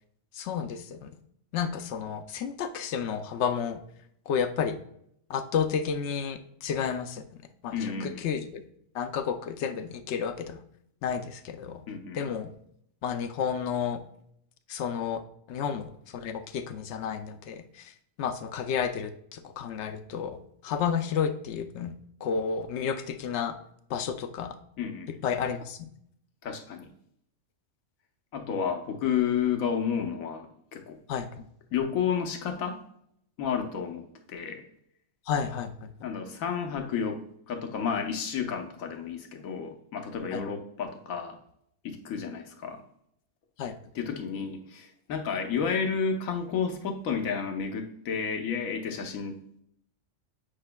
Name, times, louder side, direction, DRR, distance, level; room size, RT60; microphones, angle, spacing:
voice 1, 0.3-1.1 1.5-3.8 4.3-4.8 5.3-7.2 7.6-8.6 8.9-10.6 11.0-11.8 12.1-12.5 13.0-14.0 14.7-15.2 15.5-17.9 18.2-21.9 22.2-23.6 23.9-24.6 25.2-25.9 31.1-31.5 35.3-36.1 40.3-40.4 43.6-43.7, left 7 dB, 65° left, 10 dB, 0.8 m, -31 dB
voice 2, 7.7-8.2 11.9-12.2 24.8-25.1 26.4-26.9 28.3-31.0 31.7-32.8 33.4-34.6 36.0-41.4 41.8-42.8 43.9-49.6, left 7 dB, 85° left, 5 dB, 1.2 m, -31 dB
8.7 x 5.2 x 2.2 m, 0.71 s
omnidirectional pair, 1.4 m